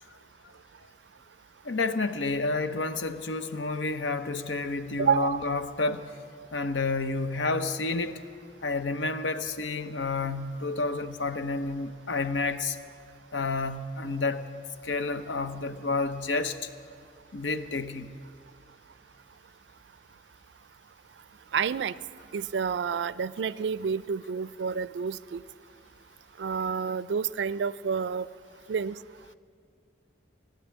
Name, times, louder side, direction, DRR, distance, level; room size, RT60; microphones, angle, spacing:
voice 1, 1.6-6.1 6.5-8.2 8.6-12.8 13.3-14.4 14.8-16.7 17.3-18.1, left 3 dB, 85° left, 10 dB, 0.8 m, -30 dB
voice 2, 5.0-5.4 21.5-21.9 22.3-25.4 26.4-28.3 28.7-29.0, right 6 dB, 65° right, 18 dB, 0.4 m, -29 dB
16.5 x 10.0 x 8.2 m, 2.3 s
head